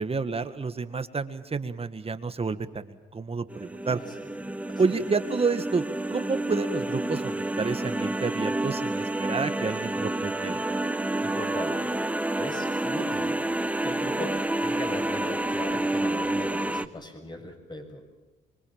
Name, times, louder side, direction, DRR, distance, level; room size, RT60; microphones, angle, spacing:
voice 1, 0.0-4.0 4.8-5.8 6.1-10.6, right 4 dB, 30° right, 10 dB, 1.9 m, -29 dB
sound 1, 3.5-16.9, right 1 dB, 5° right, 1.1 m, -29 dB
voice 2, 3.8-5.0 11.2-12.0 12.4-13.4 13.8-18.0, left 1 dB, 20° left, 5 dB, 7.1 m, -38 dB
26.0 x 24.0 x 7.4 m, 1.2 s
cardioid pair, 90°, 20 cm